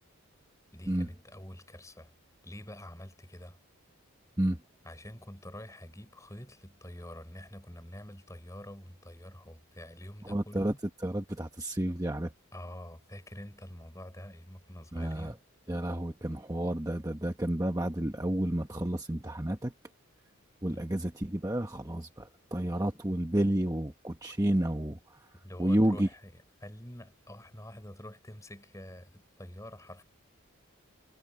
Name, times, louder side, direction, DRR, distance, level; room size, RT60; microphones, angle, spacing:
voice 1, 0.7-2.1 2.4-3.6 4.8-10.8 12.5-15.4 20.7-21.1 25.4-30.0, left 1 dB, 15° left, 4.6 m, -47 dB
voice 2, 10.3-10.7 11.0-12.3 14.9-15.3 15.7-19.7 20.6-25.0 25.6-26.1, right 1 dB, 15° right, 1.1 m, -30 dB
head